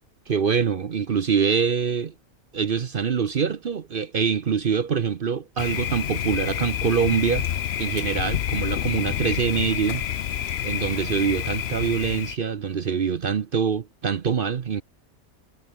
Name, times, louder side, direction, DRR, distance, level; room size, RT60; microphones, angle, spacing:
voice 1, 0.3-2.1 2.5-7.5 7.8-10.0 10.6-14.8, right 6 dB, 45° right, 0.8 m, -24 dB
Thunder, 5.6-12.4, left 9 dB, 55° left, 0.9 m, -28 dB
omnidirectional pair, 1.6 m